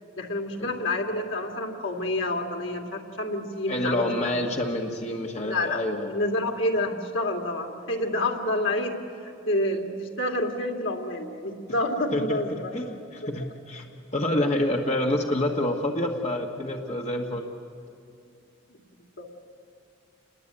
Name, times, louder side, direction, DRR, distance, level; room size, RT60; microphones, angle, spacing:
voice 1, 0.2-4.3 5.4-12.7 19.2-19.3, left 1 dB, 70° left, 2 dB, 2.5 m, -28 dB
voice 2, 3.7-6.1 12.1-13.9 14.1-17.4, left 1 dB, 35° left, 1 dB, 1.4 m, -27 dB
28.5 x 21.0 x 8.8 m, 2.6 s
head